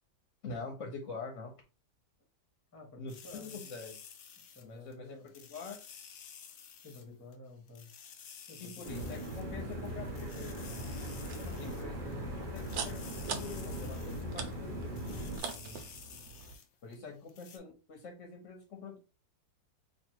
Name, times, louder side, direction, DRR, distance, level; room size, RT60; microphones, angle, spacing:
voice 1, 0.4-1.5 3.0-3.9 4.6-5.2 5.5-5.8 8.6-10.8 11.4-14.9 16.8-19.0, left 4 dB, 55° left, 0.9 m, -45 dB
voice 2, 2.7-3.7 4.4-5.5 6.8-7.9 8.5-9.3 15.5-15.9 17.0-17.3, left 2 dB, 15° left, 0.6 m, -52 dB
sound 1, 3.1-4.9 5.3-7.0 7.3-7.4 7.7-9.4 9.7-9.8 10.1-12.1 12.5-14.2 14.5-14.6 14.9-16.7 16.9-17.0 17.3-17.6, left 7 dB, 90° left, 0.6 m, -52 dB
sound 2, 8.8-15.4, equal, 30° right, 1.1 m, -40 dB
sound 3, 11.2-16.5, right 6 dB, 80° right, 1.4 m, -44 dB
3.3 x 2.5 x 4.5 m
omnidirectional pair, 2.0 m